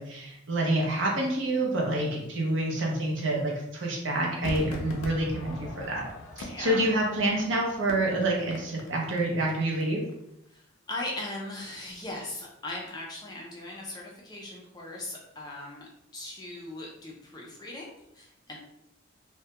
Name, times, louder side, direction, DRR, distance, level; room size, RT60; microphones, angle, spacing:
voice 1, 0.0-6.1 6.4-10.0, right 1 dB, 70° right, -1 dB, 0.6 m, -27 dB
Crowd / Fireworks, 4.4-9.8 10.1-10.2, left 2 dB, 85° left, 0.4 m, -41 dB
voice 2, 6.4-7.0 10.5-10.6 10.9-18.6, left 2 dB, 20° left, -3 dB, 0.3 m, -39 dB
2.2 x 2.1 x 2.8 m, 0.80 s
head